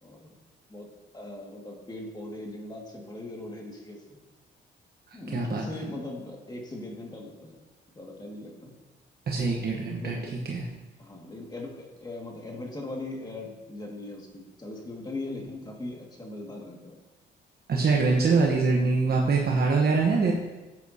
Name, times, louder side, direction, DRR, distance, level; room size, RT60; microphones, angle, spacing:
voice 1, 0.0-0.3 0.7-0.9 1.1-4.2 5.1-7.6 8.0-8.7 10.0-10.3 11.0-17.0 20.1-20.3, left 2 dB, 20° left, 0 dB, 2.0 m, -39 dB
voice 2, 5.1-5.6 9.3-10.7 17.7-20.3, right 4 dB, 50° right, -1 dB, 1.1 m, -24 dB
11.5 x 8.4 x 2.8 m, 1.2 s
cardioid pair, 90°, 20 cm